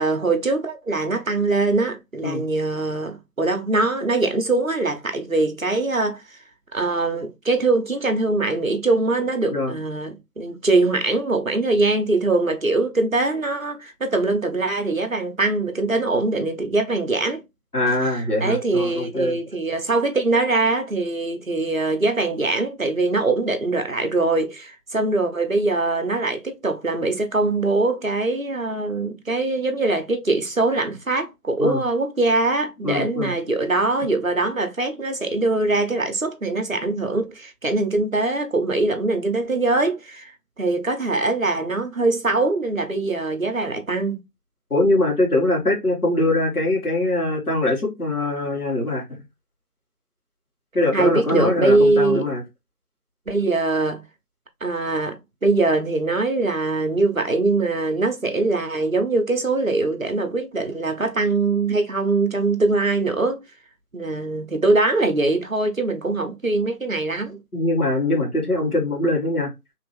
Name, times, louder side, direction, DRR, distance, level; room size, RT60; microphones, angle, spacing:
voice 1, 0.0-6.4 6.7-17.4 18.0-40.3 40.6-44.2 50.9-52.3 53.3-54.0 54.6-63.4 63.9-67.4, right 3 dB, 60° right, 0.8 m, -22 dB
voice 2, 17.7-19.3 31.6-31.8 32.8-33.3 44.7-49.2 50.7-52.4 67.5-69.5, left 2 dB, 70° left, 2.1 m, -22 dB
3.5 x 2.9 x 3.3 m
figure-of-eight pair, 175°, 46 cm